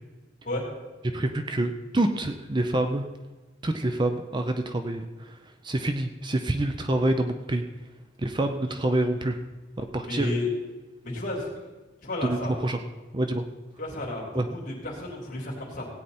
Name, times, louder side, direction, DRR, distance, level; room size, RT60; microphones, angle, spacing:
voice 1, 1.1-3.1 3.6-5.3 5.6-7.7 8.2-9.4 9.8-10.3 12.2-12.4 12.6-12.8 13.1-13.4 14.3-14.5, right 1 dB, 25° right, 7 dB, 0.6 m, -27 dB
voice 2, 10.0-10.5 11.0-11.5 12.0-12.5 13.8-15.9, left 2 dB, 45° left, -3 dB, 3.4 m, -32 dB
17.0 x 9.0 x 4.3 m, 1.2 s
head